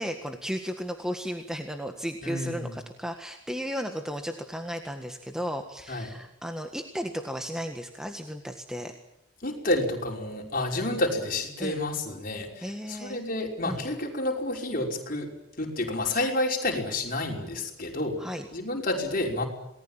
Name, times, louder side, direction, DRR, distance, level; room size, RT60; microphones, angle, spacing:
voice 1, 0.0-9.0 11.6-11.8 12.6-13.2 13.6-13.8 18.2-18.5, equal, 5° right, 5 dB, 1.6 m, -34 dB
voice 2, 2.2-2.8 5.9-6.1 9.4-15.3 15.6-19.5, left 2 dB, 45° left, 1 dB, 5.4 m, -30 dB
28.0 x 19.5 x 8.9 m, 0.79 s
head